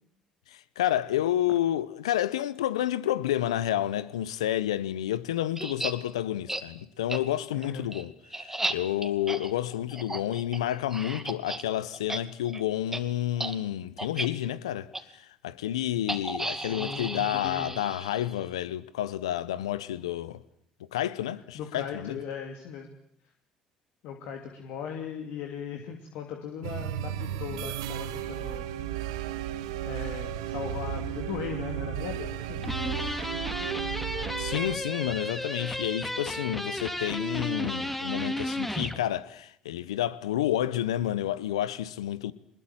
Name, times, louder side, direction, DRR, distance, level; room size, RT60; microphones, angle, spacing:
voice 1, 0.5-8.1 8.4-14.9 15.4-20.4 20.9-22.2 34.4-42.3, left 12 dB, 85° left, 1.0 m, -30 dB
sound 1, 5.6-5.9 6.5-6.6 7.1-7.2 7.6-11.6 11.9-12.2 12.5-12.6 12.9-13.0 13.4-13.5 14.0-14.3 14.9-15.0 16.1-18.4, right 2 dB, 10° right, 2.5 m, -34 dB
voice 2, 7.5-7.8 16.4-17.8 21.5-22.9 24.0-28.7 29.8-33.3, left 7 dB, 70° left, 2.7 m, -38 dB
sound 2, 26.6-34.8, right 10 dB, 80° right, 1.3 m, -34 dB
sound 3, 32.6-39.0, left 1 dB, 5° left, 2.4 m, -33 dB
23.0 x 21.0 x 9.0 m
hypercardioid pair, 60°, 3 cm